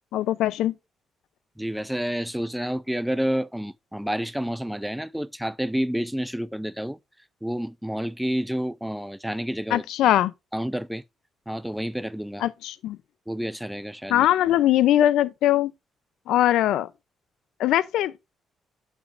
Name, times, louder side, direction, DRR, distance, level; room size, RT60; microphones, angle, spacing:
voice 1, 0.1-0.7 9.7-10.3 12.4-13.0 14.1-15.7 16.3-16.9 17.6-18.1, left 13 dB, 85° left, 0.5 m, -21 dB
voice 2, 1.6-7.0 7.4-9.8 10.5-11.0 11.5-12.4 13.3-14.3, equal, 5° right, 0.4 m, -29 dB
11.5 x 5.6 x 2.5 m
cardioid pair, 90°, 0 cm